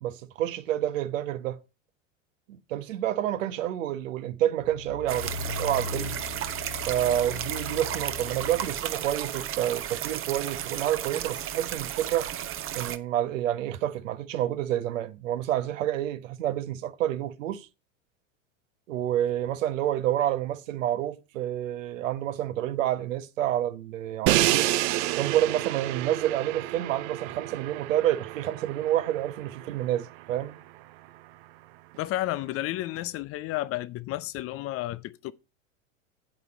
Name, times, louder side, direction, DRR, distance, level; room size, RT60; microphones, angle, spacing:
voice 1, 0.0-1.6 2.5-6.2 6.9-12.3 12.7-17.7 18.9-24.7 25.2-30.6, right 12 dB, 70° right, 1.4 m, -29 dB
sound 1, 4.6-9.0 9.5-9.6, left 6 dB, 85° left, 1.7 m, -39 dB
sound 2, 5.1-13.0, right 11 dB, 30° right, 1.0 m, -34 dB
Crash cymbal, 24.3-30.2, right 17 dB, 55° right, 0.8 m, -29 dB
voice 2, 32.0-35.3, left 15 dB, 35° left, 0.6 m, -32 dB
8.6 x 8.5 x 4.3 m
hypercardioid pair, 100°, 40 cm